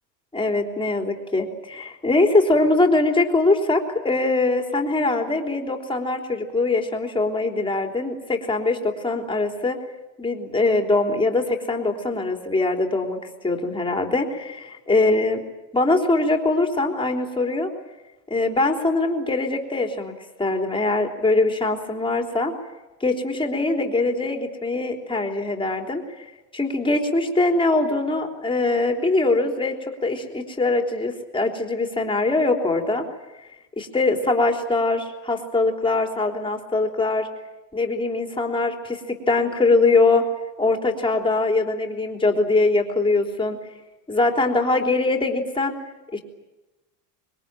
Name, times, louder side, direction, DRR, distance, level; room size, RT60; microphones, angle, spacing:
voice 1, 0.3-9.8 10.2-15.4 15.7-17.7 18.3-22.5 23.0-26.0 26.5-33.0 33.8-37.3 37.7-40.3 40.6-43.6 44.1-45.7 46.1-46.2, left 2 dB, 10° left, 3 dB, 3.5 m, -22 dB
26.0 x 22.0 x 9.0 m, 1.1 s
supercardioid pair, 120°, 47 cm